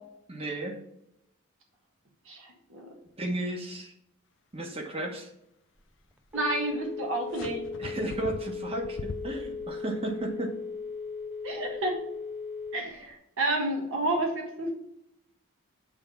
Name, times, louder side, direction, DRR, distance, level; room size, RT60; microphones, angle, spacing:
voice 1, 0.3-0.8 3.2-3.9 4.5-5.3 7.8-10.5, right 2 dB, 25° right, 1 dB, 1.2 m, -34 dB
voice 2, 2.3-2.9 6.3-7.6 11.4-12.0 12.7-14.7, right 2 dB, 65° right, 1 dB, 1.5 m, -30 dB
Telephone, 5.8-13.1, left 5 dB, 5° right, 0.3 m, -38 dB
sound 1, 7.3-9.7, left 3 dB, 60° left, 0.6 m, -41 dB
8.6 x 3.5 x 5.6 m, 0.80 s
head